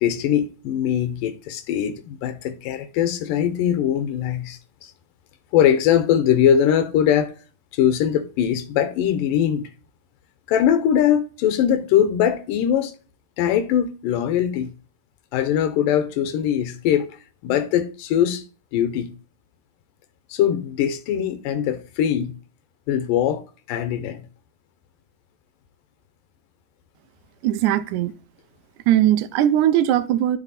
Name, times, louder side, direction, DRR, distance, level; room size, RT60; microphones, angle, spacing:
voice 1, 0.0-4.6 5.5-7.4 7.7-9.7 10.5-12.9 13.4-14.7 15.3-17.1 17.4-18.4 18.7-19.1 20.3-22.3 22.9-23.4 23.7-24.2, left 9 dB, 85° left, 2.4 m, -21 dB
voice 2, 27.4-28.1 28.9-30.4, right 12 dB, 80° right, 1.8 m, -19 dB
12.0 x 4.0 x 4.1 m
omnidirectional pair, 3.9 m